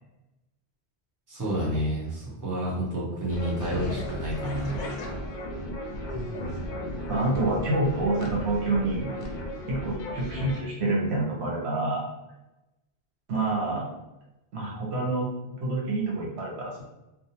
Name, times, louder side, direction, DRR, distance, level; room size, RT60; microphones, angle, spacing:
voice 1, 1.3-4.9, equal, 20° right, -6 dB, 0.7 m, -30 dB
sound 1, 3.3-10.6, left 1 dB, 55° left, 0.5 m, -34 dB
voice 2, 7.1-9.1 9.7-12.1 13.3-13.9 14.5-15.3 15.6-16.8, right 2 dB, 80° right, -3 dB, 1.0 m, -27 dB
2.6 x 2.0 x 2.7 m, 0.96 s
omnidirectional pair, 1.1 m